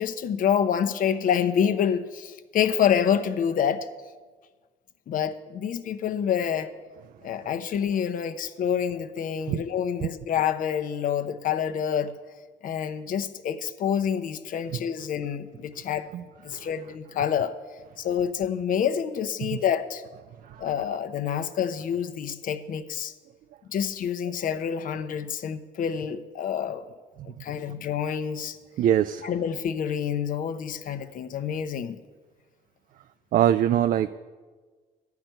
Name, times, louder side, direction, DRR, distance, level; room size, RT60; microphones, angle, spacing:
voice 1, 0.0-3.9 5.1-6.7 7.2-12.1 12.6-16.1 16.4-17.6 18.0-20.0 20.6-23.1 23.7-26.9 27.2-28.6 29.2-32.0, left 8 dB, 55° left, 9 dB, 0.8 m, -27 dB
voice 2, 28.8-29.3 33.3-34.1, right 11 dB, 55° right, 12 dB, 0.4 m, -23 dB
12.0 x 5.9 x 9.0 m, 1.4 s
cardioid pair, 110°, 17 cm